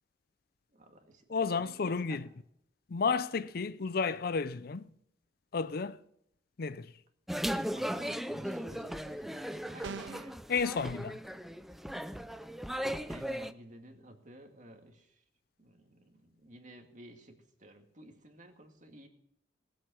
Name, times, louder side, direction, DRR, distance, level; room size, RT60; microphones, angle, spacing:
voice 1, 0.7-2.2 7.7-10.5 13.1-15.2 15.6-19.1, right 1 dB, 40° right, 2.1 m, -54 dB
voice 2, 1.3-2.3 2.9-4.8 5.5-6.0 6.6-6.9 10.5-11.2, left 5 dB, 55° left, 0.5 m, -32 dB
sound 1, 7.3-13.5, equal, ahead, 0.5 m, -37 dB
sound 2, 9.8-10.4, right 5 dB, 70° right, 0.5 m, -41 dB
19.0 x 8.0 x 6.3 m
head